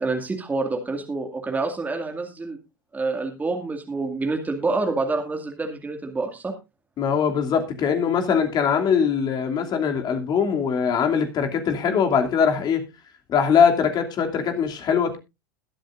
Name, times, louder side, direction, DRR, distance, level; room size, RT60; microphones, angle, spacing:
voice 1, 0.0-2.6 2.9-6.5, right 3 dB, 15° right, 3 dB, 2.2 m, -27 dB
voice 2, 7.0-12.8 13.3-15.2, left 7 dB, 35° left, 5 dB, 2.7 m, -21 dB
21.5 x 7.8 x 2.6 m, 0.25 s
hypercardioid pair, 90°, 11 cm